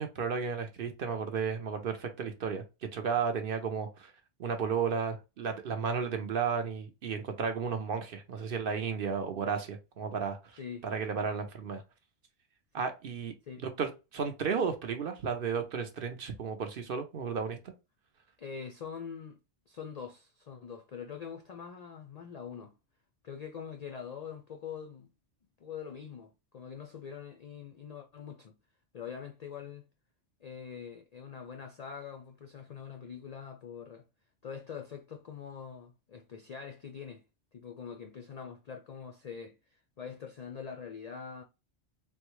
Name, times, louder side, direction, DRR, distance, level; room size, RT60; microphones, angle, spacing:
voice 1, 0.0-2.6 2.9-4.1 4.4-11.8 12.7-17.7, right 6 dB, 55° right, 0.7 m, -33 dB
voice 2, 18.4-19.4 19.7-22.7 23.2-25.1 25.6-28.6 28.9-29.8 30.4-34.0 34.4-37.2 37.5-41.4, left 7 dB, 65° left, 0.4 m, -44 dB
3.6 x 2.2 x 3.0 m
omnidirectional pair, 1.2 m